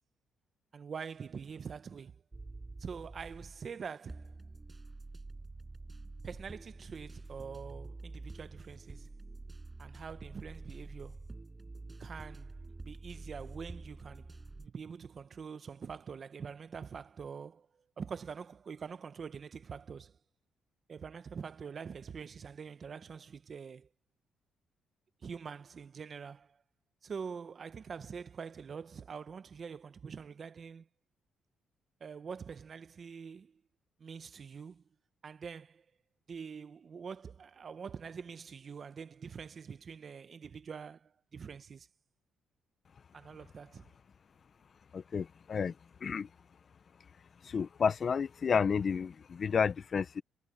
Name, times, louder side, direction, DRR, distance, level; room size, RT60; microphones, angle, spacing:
voice 1, 0.7-2.2 2.8-4.3 6.2-9.1 9.8-11.2 12.0-12.6 12.8-17.7 18.0-20.2 20.9-23.9 25.2-26.6 27.0-30.9 32.0-33.6 34.0-34.8 35.2-35.8 36.3-41.9 43.1-43.8, right 6 dB, 45° right, 1.1 m, -45 dB
sound 1, 2.3-3.7 4.1-14.7, right 3 dB, 20° right, 5.8 m, -47 dB
voice 2, 44.9-45.8 46.0-46.3 47.4-50.2, left 6 dB, 45° left, 0.7 m, -31 dB
cardioid pair, 90°, 0 cm